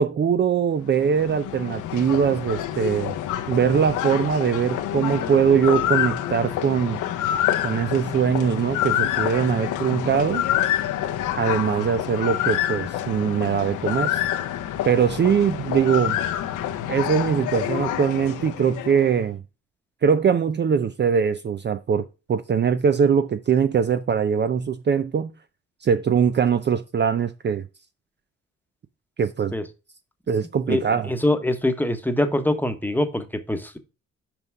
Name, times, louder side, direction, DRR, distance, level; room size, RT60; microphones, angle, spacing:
voice 1, 0.0-3.1 3.5-7.0 7.6-10.4 11.4-14.2 14.8-16.2 16.9-19.4 20.0-25.3 25.8-27.6 29.2-29.5 30.3-31.1, right 7 dB, 35° right, 0.6 m, -22 dB
sound 1, 0.8-19.2, left 11 dB, 85° left, 0.9 m, -27 dB
voice 2, 30.7-33.8, left 1 dB, 5° left, 1.1 m, -24 dB
6.0 x 5.4 x 4.6 m
cardioid pair, 90°, 30 cm